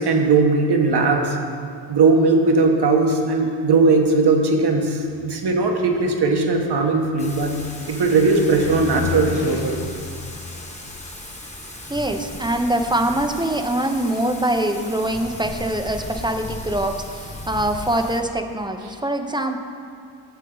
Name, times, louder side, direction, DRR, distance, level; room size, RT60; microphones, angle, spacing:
voice 1, 0.0-1.4 1.9-7.6 7.9-9.8, right 3 dB, 60° right, 2 dB, 1.3 m, -18 dB
Car, 5.0-13.2, left 5 dB, 70° left, 0.9 m, -35 dB
Thunder / Rain, 7.2-18.2, left 1 dB, 15° left, 1.4 m, -36 dB
voice 2, 11.9-19.6, right 1 dB, 10° right, 5 dB, 0.7 m, -23 dB
12.5 x 7.3 x 3.9 m, 2.3 s
cardioid pair, 70°, 44 cm